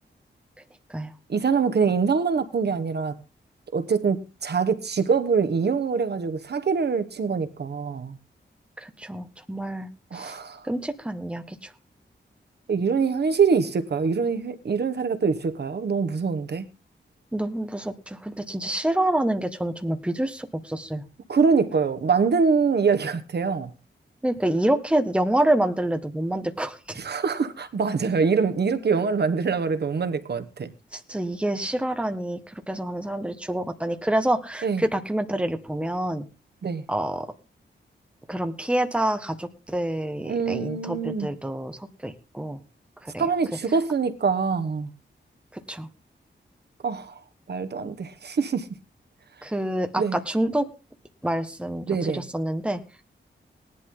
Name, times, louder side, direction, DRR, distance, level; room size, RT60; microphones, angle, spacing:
voice 1, 1.3-3.2 3.7-8.2 10.1-10.6 12.7-16.6 21.3-23.7 27.0-30.7 34.6-34.8 36.6-36.8 40.3-41.3 43.2-44.9 46.8-47.2 47.5-48.7 50.0-50.2 51.9-52.2, right 5 dB, 60° right, 1.3 m, -24 dB
voice 2, 8.8-10.4 10.6-11.7 17.3-21.0 24.2-27.0 30.9-36.2 36.9-37.3 38.3-42.6 43.0-43.2 45.5-45.9 49.4-50.7 51.2-52.8, right 1 dB, 5° right, 1.4 m, -27 dB
18.5 x 11.5 x 3.8 m
wide cardioid pair, 175°, 19 cm